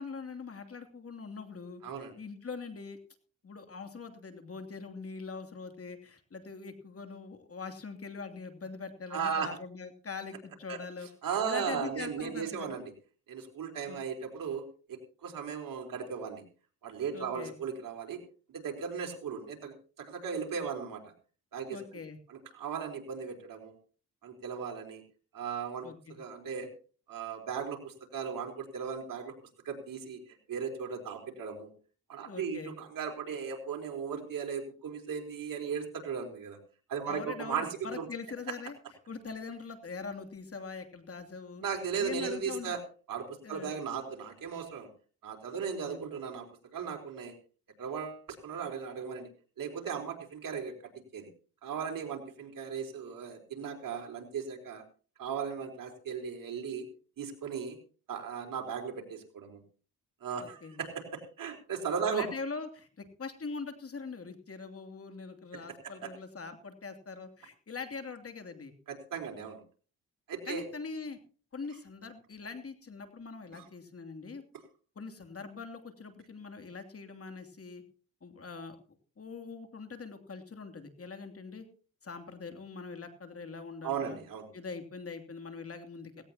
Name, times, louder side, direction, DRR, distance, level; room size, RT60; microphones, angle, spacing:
voice 1, 0.0-3.0 3.4-12.7 13.9-14.0 17.1-17.5 21.7-22.2 25.8-26.1 32.2-32.8 37.1-38.8 39.1-41.6 42.0-42.8 43.4-43.7 45.8-46.0 60.4-60.8 62.1-68.7 70.4-71.2 71.5-74.4 75.0-77.8 78.2-78.8 79.2-81.6 82.0-84.2 84.5-86.2, left 4 dB, 40° left, 6 dB, 2.8 m, -42 dB
voice 2, 1.8-2.1 9.1-9.5 10.7-10.8 11.2-12.9 13.3-14.6 15.2-16.4 16.8-18.2 18.5-21.0 21.5-21.8 22.3-23.8 24.2-25.0 25.3-26.7 27.1-29.3 29.6-30.2 30.5-31.7 32.1-36.6 36.9-38.1 41.6-42.8 43.1-44.9 45.2-46.5 46.7-47.3 47.8-49.3 49.6-51.3 51.6-54.8 55.2-56.9 57.2-57.8 58.1-59.6 60.2-62.3 65.5-65.6 68.9-69.6 70.3-70.6 73.6-73.7 83.8-84.5, right 6 dB, 65° right, 2 dB, 4.1 m, -37 dB
17.5 x 17.0 x 2.9 m, 0.39 s
supercardioid pair, 60°, 36 cm